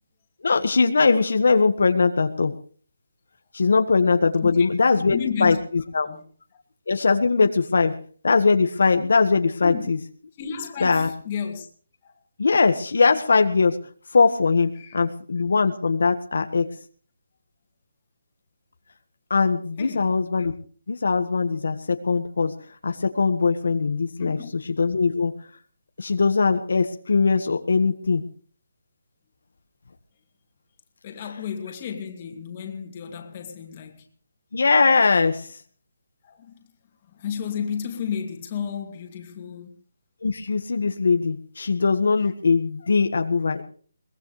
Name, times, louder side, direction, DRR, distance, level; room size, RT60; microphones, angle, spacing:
voice 1, 0.4-2.5 3.5-6.1 6.9-7.9 8.2-10.0 10.8-11.1 12.4-13.8 14.1-16.7 19.3-20.5 20.9-22.5 22.8-24.4 24.8-25.3 26.0-28.2 34.5-35.5 40.2-43.6, left 4 dB, 70° left, 1.6 m, -21 dB
voice 2, 5.1-5.6 6.1-6.2 9.6-9.9 10.4-11.7 12.0-12.1 14.8-15.0 19.8-20.1 24.2-24.5 31.0-34.1 36.2-36.5 37.1-39.7, left 7 dB, 25° left, 2.6 m, -32 dB
22.5 x 19.0 x 3.3 m
hypercardioid pair, 170°, 0 cm